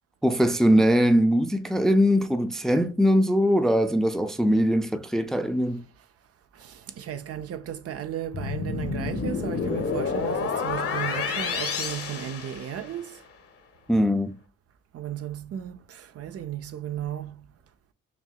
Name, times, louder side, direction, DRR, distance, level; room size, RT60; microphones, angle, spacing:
voice 1, 0.2-5.8 13.9-14.4, equal, ahead, 0.4 m, -21 dB
voice 2, 6.5-13.2 14.9-17.5, right 10 dB, 50° right, 0.5 m, -35 dB
sound 1, 8.3-13.1, left 5 dB, 50° left, 1.0 m, -29 dB
5.9 x 2.7 x 2.3 m
cardioid pair, 90°, 30 cm